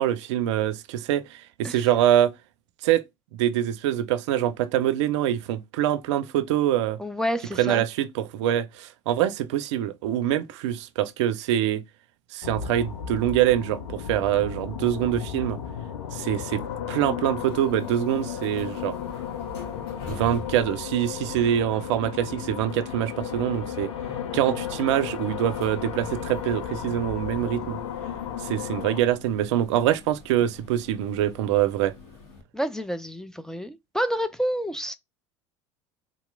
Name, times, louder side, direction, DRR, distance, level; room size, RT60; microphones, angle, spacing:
voice 1, 0.0-2.3 2.8-3.0 3.3-7.0 7.6-11.8 12.3-15.6 16.1-16.6 16.9-18.9 20.1-23.9 24.3-27.8 28.4-31.9, right 11 dB, 70° right, 0.4 m, -24 dB
voice 2, 7.0-7.8 32.5-35.0, equal, 5° left, 0.4 m, -29 dB
sound 1, 12.4-29.0, left 8 dB, 80° left, 0.5 m, -34 dB
sound 2, 17.4-32.4, left 4 dB, 65° left, 2.1 m, -45 dB
3.9 x 2.9 x 2.3 m
hypercardioid pair, 70°, 15 cm